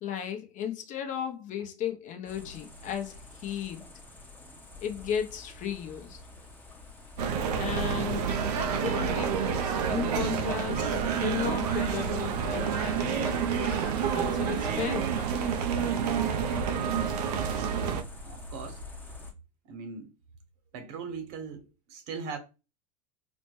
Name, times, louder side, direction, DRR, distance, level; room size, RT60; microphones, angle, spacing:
voice 1, 0.0-3.8 4.8-6.2 7.5-8.3 8.5-13.5 14.0-15.1, left 9 dB, 40° left, 0.7 m, -35 dB
sound 1, 2.3-19.3, left 3 dB, 10° left, 0.7 m, -46 dB
sound 2, 7.2-18.0, right 7 dB, 80° right, 0.5 m, -29 dB
Fowl, 11.2-16.4, left 6 dB, 75° left, 1.0 m, -50 dB
voice 2, 18.2-18.8 19.6-20.1 20.7-22.4, right 5 dB, 60° right, 1.0 m, -39 dB
4.1 x 2.1 x 3.0 m
supercardioid pair, 110°, 20 cm